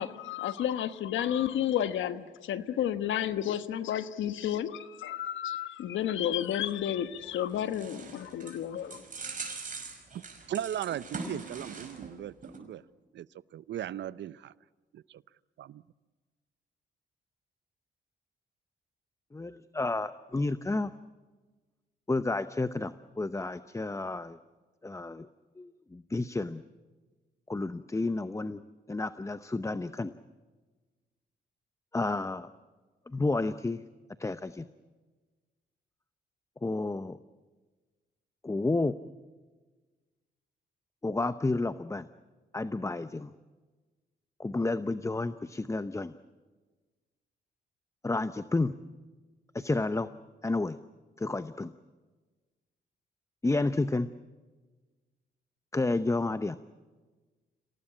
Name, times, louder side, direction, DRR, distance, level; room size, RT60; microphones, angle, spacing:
voice 1, 0.0-9.0, left 10 dB, 85° left, 12 dB, 1.2 m, -31 dB
sound 1, 7.2-12.2 12.4-12.6, right 4 dB, 45° right, 5.5 m, -42 dB
voice 2, 10.1-12.8 13.1-13.3 13.5-14.5 14.9-15.2 15.6-15.8, right 11 dB, 70° right, 19 dB, 0.6 m, -37 dB
voice 3, 19.3-20.9 22.1-24.4 24.8-25.3 25.6-26.6 27.5-28.6 28.9-30.1 31.9-32.5 33.1-33.8 34.2-34.7 36.6-37.2 38.4-39.0 41.0-42.1 42.5-43.3 44.4-46.1 48.0-48.8 49.5-50.1 50.4-50.8 51.2-51.7 53.4-54.1 55.7-56.6, left 2 dB, 15° left, 13 dB, 0.7 m, -31 dB
27.0 x 18.0 x 8.7 m, 1.3 s
cardioid pair, 85°, 19 cm